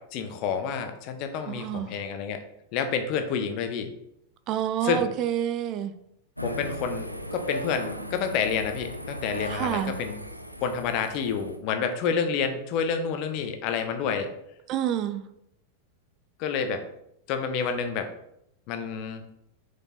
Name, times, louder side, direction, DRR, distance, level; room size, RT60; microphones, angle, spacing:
voice 1, 0.1-2.4 2.7-3.9 4.8-5.1 6.4-10.2 10.6-14.3 16.4-16.8 17.3-18.1 18.7-19.2, left 6 dB, 40° left, 1.1 m, -29 dB
voice 2, 1.5-1.9 4.5-5.9 9.5-9.9 14.7-15.2, right 10 dB, 35° right, 0.7 m, -28 dB
sound 1, 6.4-11.6, equal, 90° right, 0.7 m, -37 dB
6.9 x 5.4 x 4.3 m
figure-of-eight pair, 90°, 0 cm